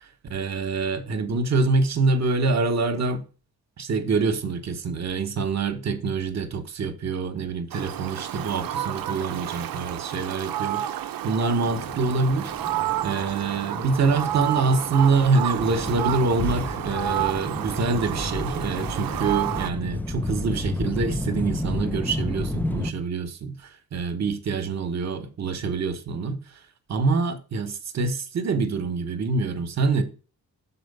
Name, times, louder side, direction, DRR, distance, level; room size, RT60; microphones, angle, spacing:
voice 1, 0.3-3.2 3.8-12.5 13.0-23.5 23.9-26.4 26.9-30.0, right 4 dB, 45° right, 1.1 m, -25 dB
Fowl, 7.7-19.7, right 12 dB, 70° right, 0.6 m, -30 dB
sound 1, 11.6-22.9, left 1 dB, 5° left, 0.4 m, -32 dB
6.4 x 4.3 x 5.4 m
cardioid pair, 115°, 37 cm